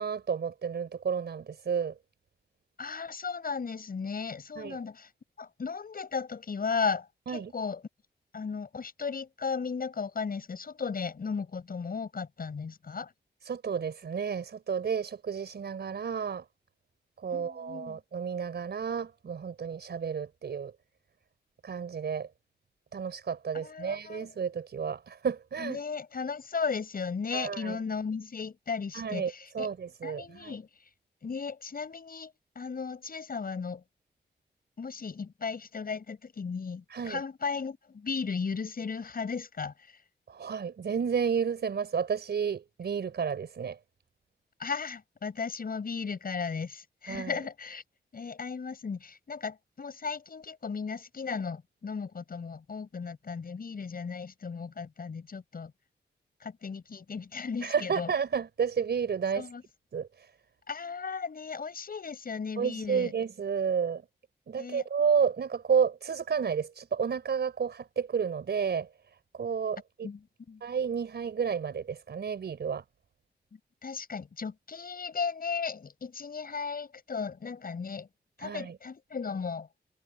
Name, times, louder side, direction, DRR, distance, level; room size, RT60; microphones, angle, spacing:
voice 1, 0.0-2.0 4.6-4.8 7.3-7.5 13.4-16.4 17.2-20.7 21.6-22.3 22.9-25.8 27.3-27.8 28.9-30.5 36.9-37.2 40.3-43.8 47.1-47.4 57.6-59.5 59.9-60.3 62.6-64.0 64.5-70.1 70.6-72.8 78.4-78.8, right 6 dB, 75° right, 4.7 m, -31 dB
voice 2, 2.8-5.1 5.4-7.8 8.3-13.1 17.3-18.0 23.5-24.3 25.6-29.7 30.0-30.7 31.2-33.8 34.8-40.0 44.6-47.8 48.1-55.7 56.4-58.1 59.3-59.6 60.7-63.1 64.6-64.8 70.0-70.2 70.5-70.6 73.5-78.1 78.4-79.7, left 5 dB, 55° left, 7.2 m, -36 dB
wide cardioid pair, 100°, 18 cm